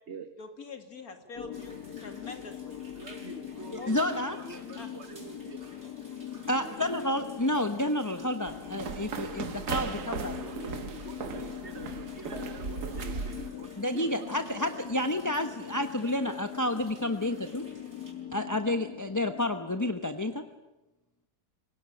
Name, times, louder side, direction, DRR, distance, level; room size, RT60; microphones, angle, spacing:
voice 1, 0.4-2.8 3.8-4.0 4.8-4.9, left 4 dB, 65° left, 6 dB, 2.9 m, -44 dB
sound 1, 1.3-20.6, left 10 dB, 85° left, 1.9 m, -42 dB
sound 2, 1.5-18.1, right 2 dB, 60° right, 5.8 m, -56 dB
voice 2, 3.0-5.7 6.4-6.9 9.5-9.7 10.0-14.7 16.2-16.4, right 4 dB, 45° right, 8 dB, 1.5 m, -46 dB
voice 3, 3.7-4.6 6.5-10.3 13.8-17.6 18.3-20.4, left 1 dB, 15° left, 8 dB, 0.9 m, -30 dB
sound 3, 8.5-13.5, right 5 dB, 85° right, 1.9 m, -37 dB
25.0 x 18.0 x 9.9 m, 1.0 s
omnidirectional pair, 1.7 m